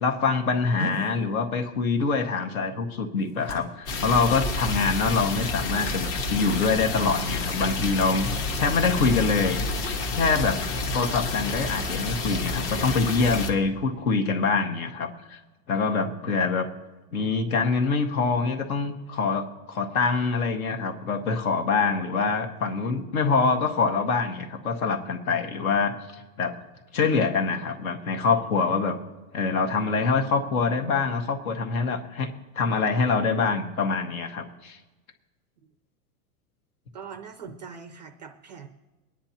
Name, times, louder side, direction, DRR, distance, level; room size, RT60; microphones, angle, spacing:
voice 1, 0.0-8.3 8.6-9.7 10.1-10.6 10.9-15.4 15.7-16.7 17.1-26.5 26.9-29.0 29.3-32.3 32.6-34.8, left 4 dB, 60° left, 5 dB, 1.8 m, -25 dB
sound 1, 0.6-10.3 10.5-10.9 11.3-11.5 12.1-14.0, left 1 dB, 85° left, 3.7 m, -43 dB
sound 2, 3.9-13.5, left 3 dB, 35° left, 1.4 m, -29 dB
voice 2, 36.9-38.7, right 6 dB, 30° right, 7 dB, 0.4 m, -42 dB
23.5 x 10.0 x 2.9 m, 1.2 s
supercardioid pair, 175°, 48 cm